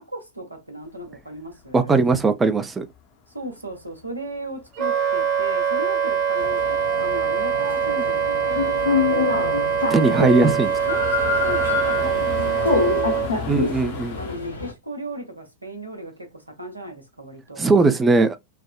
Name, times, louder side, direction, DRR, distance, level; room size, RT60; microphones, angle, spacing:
voice 1, 0.0-2.0 3.3-9.6 10.0-13.3 14.2-17.8, right 1 dB, 85° right, 0.9 m, -36 dB
sound 1, 0.9-3.1 3.4-14.4, left 7 dB, 45° left, 0.6 m, -38 dB
voice 2, 1.7-2.9 9.9-10.7 13.5-14.2 17.6-18.4, right 3 dB, 15° right, 0.4 m, -19 dB
Wind instrument woodwind instrument, 4.8-13.3, right 7 dB, 40° right, 0.8 m, -23 dB
sound 2, 6.4-14.7, left 4 dB, 75° left, 0.9 m, -26 dB
3.4 x 2.1 x 2.2 m
figure-of-eight pair, 90°, 0 cm